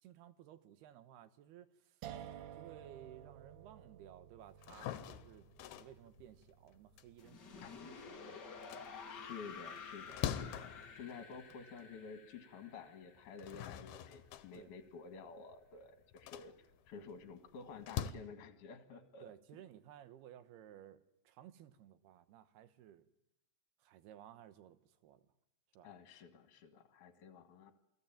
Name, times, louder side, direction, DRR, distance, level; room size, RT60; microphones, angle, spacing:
voice 1, 0.0-2.0 2.5-8.4 14.5-14.7 19.2-23.1 23.8-25.2 25.7-25.9, right 11 dB, 85° right, 12 dB, 3.2 m, -57 dB
sound 1, 2.0-9.0, right 10 dB, 65° right, 2.2 m, -54 dB
sound 2, 4.5-8.1 8.5-12.0 12.4-12.5 13.2-18.1, left 10 dB, 75° left, 2.9 m, -45 dB
sound 3, 7.2-14.1, left 5 dB, 35° left, 1.8 m, -51 dB
voice 2, 9.1-19.3 25.8-27.7, left 5 dB, 60° left, 8 dB, 3.2 m, -52 dB
29.0 x 19.5 x 9.0 m, 0.87 s
omnidirectional pair, 4.6 m